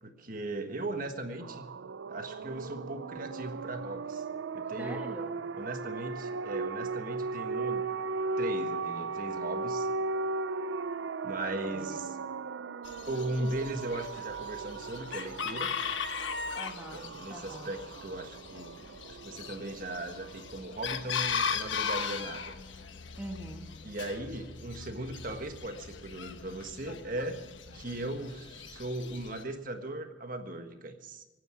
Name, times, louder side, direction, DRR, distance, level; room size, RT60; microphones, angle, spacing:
voice 1, 0.0-1.7 2.1-4.2 4.5-5.1 5.5-7.8 8.4-9.9 11.2-12.2 13.1-15.7 16.9-18.8 19.0-22.5 23.8-27.4 27.7-31.3, right 2 dB, 50° right, 6 dB, 1.5 m, -38 dB
sound 1, 1.4-20.8, right 4 dB, 80° right, 0.5 m, -37 dB
voice 2, 4.8-5.4 11.4-12.0 16.5-17.7 23.2-23.7, right 1 dB, 10° right, 2 dB, 1.3 m, -43 dB
Chicken rooster, 12.8-29.4, left 6 dB, 90° left, 1.2 m, -38 dB
24.5 x 9.5 x 6.2 m, 1.2 s
head